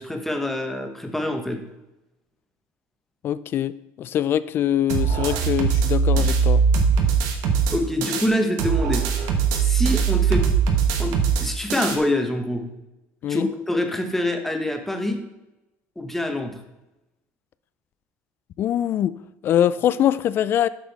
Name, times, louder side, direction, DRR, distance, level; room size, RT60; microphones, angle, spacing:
voice 1, 0.0-1.6 7.7-9.2 9.6-10.5 11.0-12.6 13.3-15.2 16.0-16.5, left 1 dB, 5° left, 4 dB, 0.9 m, -25 dB
voice 2, 3.2-6.6 13.2-13.5 18.6-19.1 19.4-20.7, left 10 dB, 40° left, 17 dB, 0.3 m, -23 dB
sound 1, 4.9-8.3 8.6-12.0, right 6 dB, 70° right, 1.2 m, -21 dB
7.9 x 6.1 x 4.1 m, 0.96 s
cardioid pair, 150°, 6 cm